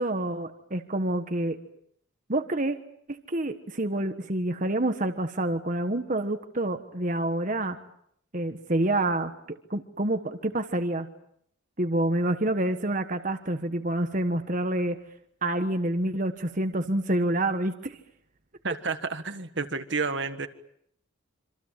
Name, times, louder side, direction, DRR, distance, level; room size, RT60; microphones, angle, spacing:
voice 1, 0.0-1.6 2.3-2.8 3.1-7.8 8.3-11.1 11.8-15.0 15.4-18.0, right 1 dB, 40° right, 7 dB, 1.4 m, -28 dB
voice 2, 18.6-20.5, right 4 dB, 60° right, 9 dB, 1.6 m, -30 dB
27.0 x 26.0 x 7.5 m, 0.69 s
head